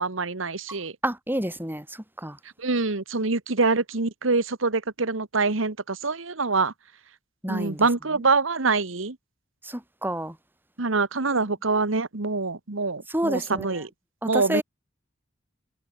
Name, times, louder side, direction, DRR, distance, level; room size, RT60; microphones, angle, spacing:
voice 1, 0.0-0.9 2.6-6.7 7.5-9.2 10.8-13.9 14.2-14.6, right 3 dB, 80° right, 1.5 m, -25 dB
voice 2, 1.0-1.8 2.2-2.4 7.4-7.8 9.6-10.3 13.1-13.7 14.2-14.6, right 1 dB, 10° right, 5.2 m, -28 dB
head